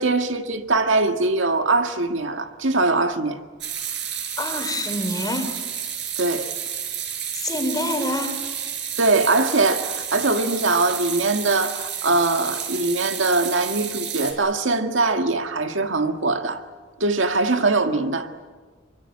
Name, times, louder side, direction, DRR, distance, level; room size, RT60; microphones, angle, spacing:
voice 1, 0.0-3.4 6.2-6.4 9.0-16.6 17.0-18.3, right 3 dB, 80° right, 1.8 m, -22 dB
sound 1, 3.6-14.3, right 8 dB, 65° right, 5.2 m, -31 dB
voice 2, 4.4-5.5 7.3-8.4, left 1 dB, 20° left, 3.4 m, -26 dB
25.5 x 23.5 x 8.6 m
head